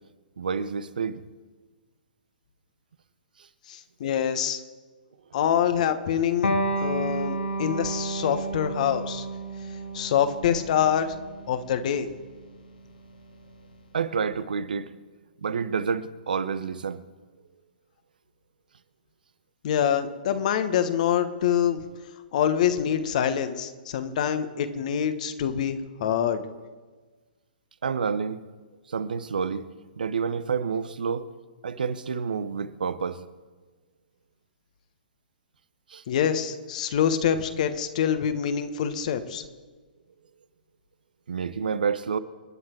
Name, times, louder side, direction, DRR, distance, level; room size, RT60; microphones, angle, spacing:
voice 1, 0.4-1.2 13.9-14.9 15.4-17.0 27.8-28.4 28.9-29.7 30.0-31.3 31.6-33.2 35.9-36.0 41.3-42.2, right 6 dB, 65° right, 15 dB, 0.9 m, -29 dB
voice 2, 3.7-4.6 5.3-9.3 9.9-11.1 11.5-12.1 19.6-21.8 22.3-26.4 36.1-39.4, left 9 dB, 50° left, 9 dB, 1.4 m, -25 dB
Electric guitar, 6.4-13.6, right 1 dB, 70° left, 2.3 m, -32 dB
28.5 x 9.6 x 4.6 m, 1.4 s
figure-of-eight pair, 120°, 5 cm